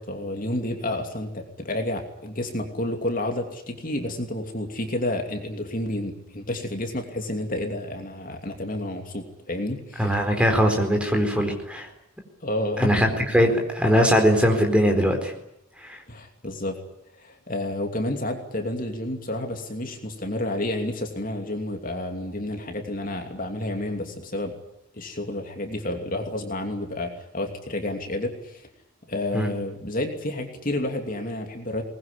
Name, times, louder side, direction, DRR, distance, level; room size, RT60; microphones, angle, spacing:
voice 1, 0.0-10.3 12.4-13.1 16.1-16.8 17.1-24.5 24.9-28.7 29.1-31.8, left 1 dB, 40° left, 4 dB, 2.8 m, -30 dB
voice 2, 10.0-11.9 12.8-15.3 15.8-16.0 29.3-29.5, equal, 5° right, 3 dB, 4.4 m, -21 dB
23.0 x 20.5 x 10.0 m, 0.81 s
head